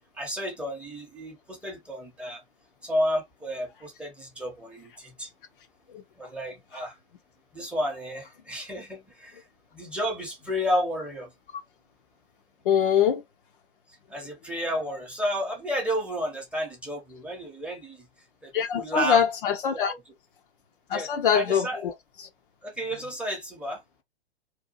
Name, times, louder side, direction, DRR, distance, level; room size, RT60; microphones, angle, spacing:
voice 1, 0.2-2.4 2.8-5.3 6.2-7.0 7.5-9.4 9.7-11.3 14.1-18.1 18.4-19.2 19.9-20.0 20.9-21.9 22.6-23.8, equal, 5° right, 0.7 m, -31 dB
voice 2, 12.6-13.2 18.5-19.9 20.9-21.9 22.2-22.3, left 8 dB, 55° left, 0.6 m, -23 dB
2.8 x 2.3 x 2.4 m
figure-of-eight pair, 115°, 33 cm